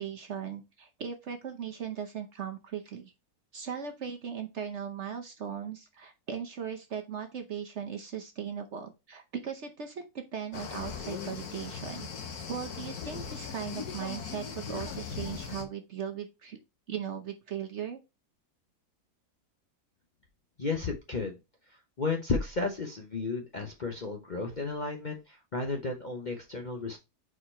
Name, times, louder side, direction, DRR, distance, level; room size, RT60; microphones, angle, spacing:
voice 1, 0.0-3.1 3.5-12.1 12.5-16.6 16.9-18.0, right 7 dB, 50° right, 5 dB, 1.0 m, -38 dB
sound 1, 10.5-15.6, left 6 dB, 65° left, 1.5 m, -39 dB
voice 2, 20.6-21.4 22.0-27.0, left 3 dB, 40° left, 3 dB, 0.7 m, -33 dB
4.9 x 4.4 x 4.3 m, 0.25 s
omnidirectional pair, 1.7 m